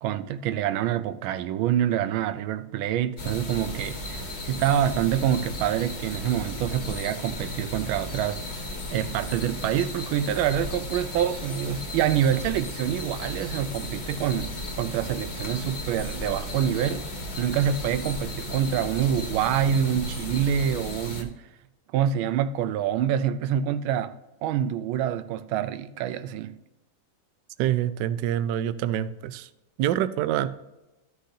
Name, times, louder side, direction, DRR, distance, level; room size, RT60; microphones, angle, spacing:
voice 1, 0.0-8.4 8.9-17.1 17.4-21.4 21.9-24.1 24.4-26.6, right 10 dB, 90° right, 1.4 m, -26 dB
sound 1, 3.2-21.2, left 1 dB, 35° left, 1.4 m, -35 dB
voice 2, 27.6-29.5 29.8-30.5, right 11 dB, 75° right, 1.1 m, -26 dB
13.0 x 6.5 x 2.7 m
omnidirectional pair, 2.2 m